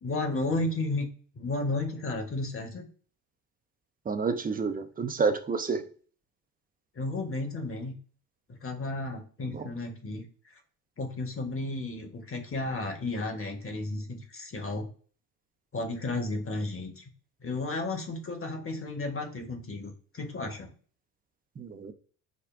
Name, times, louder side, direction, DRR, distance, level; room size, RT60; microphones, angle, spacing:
voice 1, 0.0-1.1 1.3-2.9 6.9-8.0 8.5-10.3 11.0-14.9 15.7-17.0 17.4-20.7, left 2 dB, 25° left, 1.1 m, -33 dB
voice 2, 4.1-5.8 9.5-9.6 21.6-21.9, right 5 dB, 20° right, 0.6 m, -29 dB
5.1 x 2.1 x 2.5 m
figure-of-eight pair, 50°, 48 cm